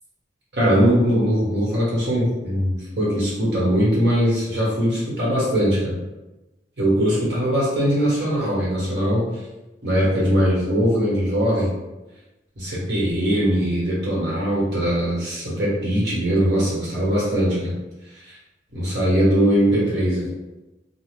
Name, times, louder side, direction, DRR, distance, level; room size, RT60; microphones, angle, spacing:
voice 1, 0.5-5.9 6.8-9.2 9.8-11.7 12.6-17.7 18.2-18.4 18.7-20.3, equal, 75° right, -7 dB, 1.3 m, -21 dB
2.4 x 2.4 x 3.2 m, 1.0 s
head